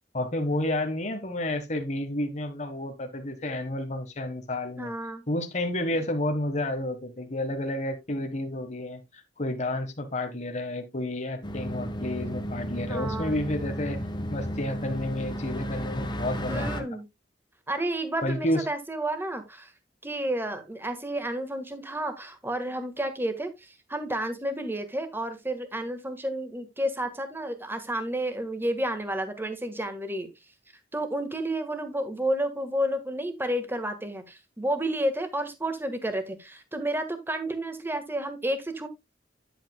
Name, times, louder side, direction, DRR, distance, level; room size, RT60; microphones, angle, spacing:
voice 1, 0.1-4.9 5.3-14.0 14.3-16.7 18.2-18.6, left 1 dB, 40° left, 1.5 m, -30 dB
voice 2, 4.8-5.2 12.9-13.4 16.5-17.0 17.7-19.7 20.0-30.3 30.9-38.9, right 1 dB, 15° right, 1.6 m, -31 dB
sound 1, 11.4-16.8, equal, 25° left, 1.4 m, -33 dB
10.0 x 8.4 x 2.3 m
head